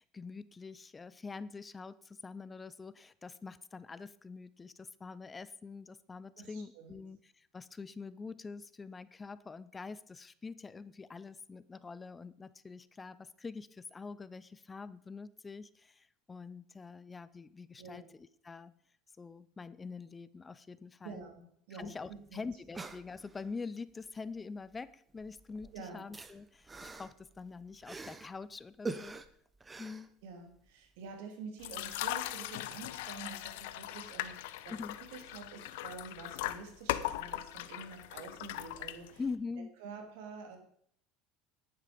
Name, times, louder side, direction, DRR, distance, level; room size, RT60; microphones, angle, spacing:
voice 1, 0.0-18.7 19.2-21.2 21.7-29.2 29.8-30.1 34.7-35.0 39.2-39.8, left 4 dB, 20° left, 17 dB, 0.6 m, -45 dB
voice 2, 6.4-7.0 17.8-18.0 21.0-22.4 25.7-26.0 30.2-34.7 35.0-39.2 39.8-40.6, right 5 dB, 75° right, 5 dB, 2.9 m, -48 dB
sound 1, 21.8-21.9 22.1-22.2 22.5-23.6 24.6-24.9 25.2-28.4 28.8-30.7 31.1-31.2, right 3 dB, 20° right, 0.9 m, -45 dB
sound 2, 31.6-39.4, left 15 dB, 80° left, 0.7 m, -39 dB
10.5 x 9.7 x 5.2 m, 0.65 s
supercardioid pair, 95°, 0 cm